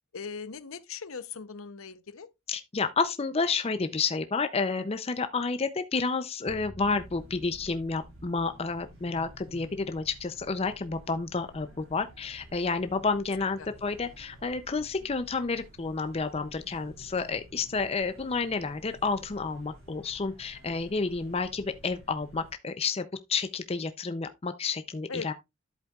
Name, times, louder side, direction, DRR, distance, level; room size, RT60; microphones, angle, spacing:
voice 1, 0.1-2.3 13.6-13.7 25.1-25.3, left 5 dB, 70° left, 0.8 m, -39 dB
voice 2, 2.5-25.3, left 4 dB, 25° left, 0.5 m, -30 dB
sound 1, 6.5-10.6, equal, ahead, 0.8 m, -52 dB
sound 2, 6.8-22.5, equal, 70° right, 6.7 m, -52 dB
11.0 x 8.1 x 2.3 m
head